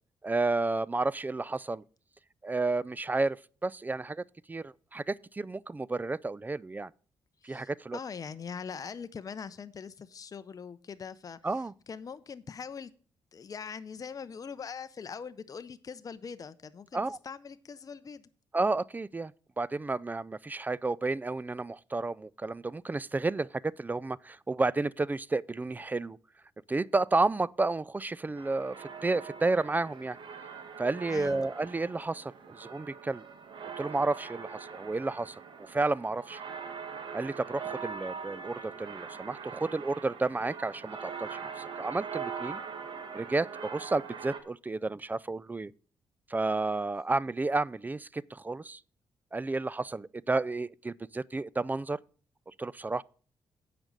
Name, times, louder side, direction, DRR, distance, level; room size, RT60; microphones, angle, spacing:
voice 1, 0.2-1.8 2.4-6.9 7.4-8.0 11.4-11.7 16.9-17.2 18.5-26.2 26.7-30.2 30.8-33.2 33.8-36.4 37.1-42.6 43.1-45.7 46.3-48.8 49.3-52.0 52.6-53.0, right 3 dB, 20° right, 0.3 m, -31 dB
voice 2, 7.4-11.4 11.9-12.9 13.3-18.3 31.1-31.4, left 6 dB, 40° left, 0.6 m, -42 dB
sound 1, 28.4-44.4, right 6 dB, 60° right, 1.5 m, -42 dB
8.9 x 5.2 x 7.3 m
supercardioid pair, 65°, 9 cm